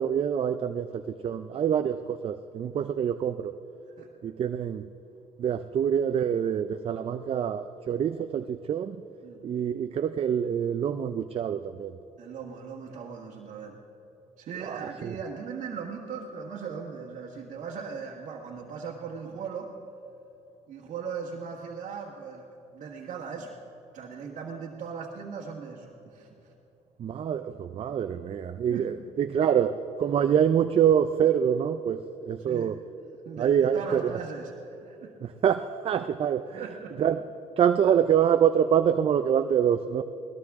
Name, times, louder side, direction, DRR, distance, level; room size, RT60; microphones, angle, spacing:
voice 1, 0.0-3.5 4.2-4.9 5.4-9.0 9.4-11.9 14.6-15.2 27.0-32.8 33.4-34.1 35.2-36.6 37.0-37.2 37.6-40.0, right 8 dB, 45° right, 9 dB, 0.5 m, -26 dB
voice 2, 12.2-13.8 14.4-19.7 20.7-22.5 22.7-23.6 23.9-26.5 28.7-28.9 32.4-32.8 33.2-35.1 36.6-37.1, right 6 dB, 70° right, -3 dB, 1.6 m, -38 dB
20.5 x 19.5 x 3.6 m, 3.0 s
cardioid pair, 110°, 13 cm